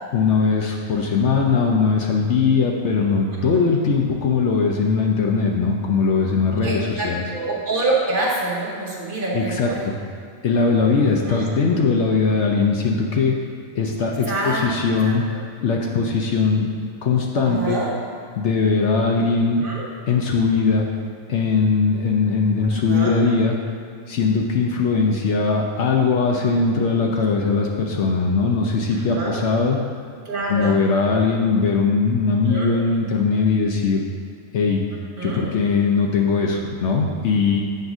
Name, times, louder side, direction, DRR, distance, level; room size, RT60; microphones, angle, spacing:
voice 1, 0.1-7.2 9.3-9.9 10.4-13.3 13.7-15.2 15.6-16.7 17.0-17.8 18.4-19.6 20.1-20.9 21.3-23.5 24.1-29.8 30.5-34.0 34.5-34.8 35.2-37.6, left 4 dB, 65° left, 0 dB, 0.8 m, -20 dB
voice 2, 6.5-9.9 11.0-11.4 14.3-14.6 15.0-15.4 17.4-17.9 19.6-19.8 22.9-23.2 28.9-29.4 30.2-30.8 32.5-32.8 35.2-35.5, right 2 dB, 45° right, -4 dB, 1.0 m, -26 dB
7.8 x 2.6 x 5.9 m, 2.3 s
omnidirectional pair, 1.4 m